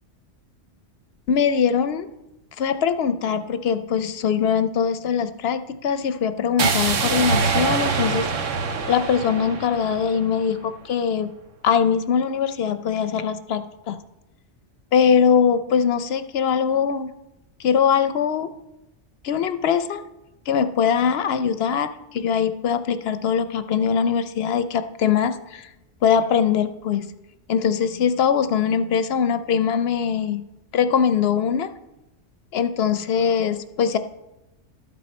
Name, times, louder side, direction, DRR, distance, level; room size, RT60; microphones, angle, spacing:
voice 1, 1.3-2.1 2.6-8.3 8.9-11.3 11.6-14.0 14.9-17.1 17.6-18.5 19.2-20.0 20.5-25.7 26.0-27.1 27.5-30.4 30.7-31.7 32.5-34.0, left 7 dB, 60° left, 11 dB, 0.8 m, -22 dB
sound 1, 6.6-10.6, right 5 dB, 70° right, 1.2 m, -24 dB
12.0 x 8.5 x 4.3 m, 0.94 s
omnidirectional pair, 1.3 m